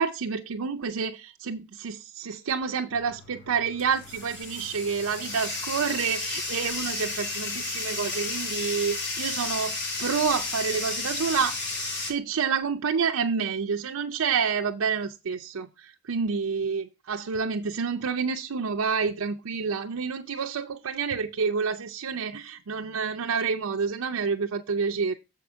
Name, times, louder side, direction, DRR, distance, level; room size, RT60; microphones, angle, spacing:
voice 1, 0.0-25.1, right 6 dB, 90° right, 0.6 m, -28 dB
Bathtub (filling or washing), 2.9-12.1, left 3 dB, 55° left, 2.5 m, -33 dB
7.1 x 4.6 x 6.2 m
head